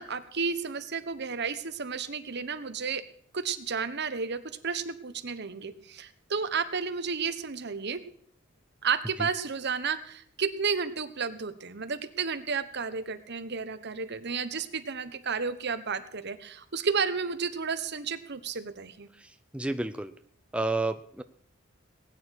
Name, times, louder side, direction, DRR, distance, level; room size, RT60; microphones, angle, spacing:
voice 1, 0.0-3.0 3.3-8.0 8.8-19.1, right 5 dB, 55° right, 12 dB, 1.2 m, -32 dB
voice 2, 19.2-20.1 20.5-21.2, right 2 dB, 5° right, 9 dB, 0.6 m, -31 dB
19.5 x 9.7 x 6.5 m, 0.62 s
head